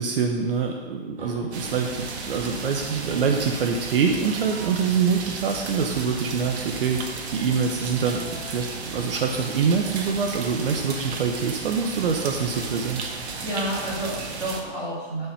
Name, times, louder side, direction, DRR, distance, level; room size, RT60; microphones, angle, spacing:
voice 1, 0.0-7.0 7.3-13.1, right 6 dB, 60° right, 3 dB, 1.0 m, -25 dB
sound 1, 1.2-2.1 2.5-3.0 4.2-4.9 7.6-8.6 10.1-10.2 10.6-10.7 12.2-13.5, equal, 35° right, 2.9 m, -45 dB
sound 2, 1.5-14.6, right 4 dB, 85° right, 1.7 m, -34 dB
voice 2, 13.1-15.3, right 1 dB, 10° right, -8 dB, 2.4 m, -31 dB
11.0 x 5.6 x 5.7 m, 1.3 s
hypercardioid pair, 180°, 32 cm